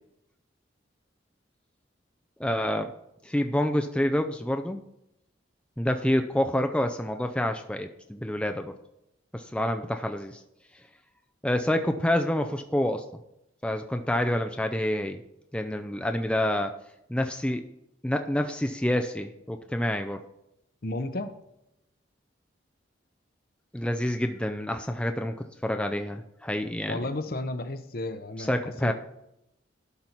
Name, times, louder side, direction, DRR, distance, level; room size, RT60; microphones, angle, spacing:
voice 1, 2.4-2.9 3.2-4.8 5.8-8.7 9.3-10.4 11.4-13.0 13.6-15.2 15.5-16.7 17.1-17.6 18.0-20.2 23.7-27.0 28.4-28.9, left 1 dB, 5° left, 6 dB, 0.4 m, -28 dB
voice 2, 20.8-21.3 26.9-28.9, left 2 dB, 50° left, 9 dB, 0.8 m, -33 dB
12.0 x 5.5 x 4.5 m, 0.82 s
head